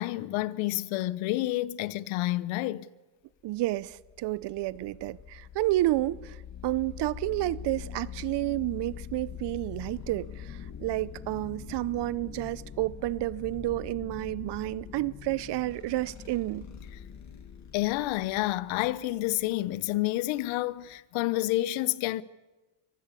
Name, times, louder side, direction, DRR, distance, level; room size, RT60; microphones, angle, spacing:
voice 1, 0.0-2.9 17.7-22.2, left 17 dB, 75° left, 0.9 m, -29 dB
voice 2, 3.4-16.7, right 17 dB, 60° right, 0.8 m, -30 dB
sound 1, 3.6-21.0, left 8 dB, 35° left, 2.2 m, -44 dB
24.0 x 15.0 x 8.4 m
supercardioid pair, 100°, 48 cm